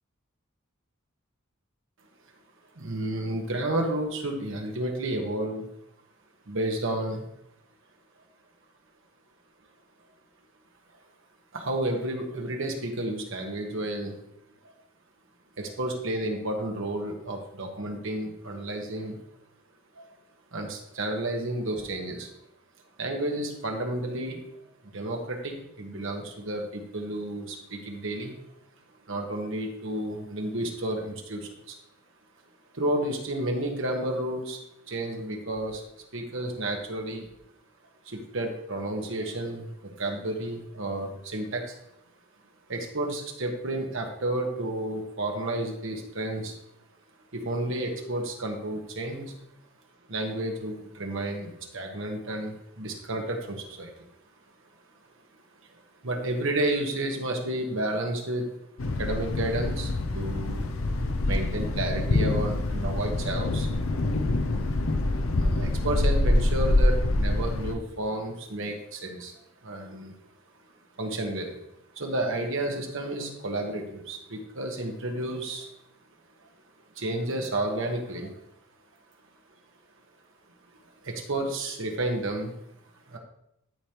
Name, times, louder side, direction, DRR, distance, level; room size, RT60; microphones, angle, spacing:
voice 1, 2.7-5.7 6.5-7.3 11.5-14.2 14.6-14.7 15.6-19.2 19.9-20.1 20.5-22.3 23.0-24.4 24.9-28.4 29.1-31.8 32.7-34.6 34.9-35.8 36.1-37.3 38.0-41.8 42.7-46.5 47.3-49.3 50.1-54.0 55.7-58.5 59.0-60.7 61.3-63.7 65.3-69.3 69.6-70.1 71.0-71.6 71.9-75.7 76.9-78.3 81.0-82.5 83.1-83.2, right 1 dB, 65° right, 2 dB, 1.4 m, -31 dB
Thunder, 58.8-67.7, left 2 dB, 75° left, 0.7 m, -25 dB
12.5 x 5.1 x 3.0 m, 0.79 s
head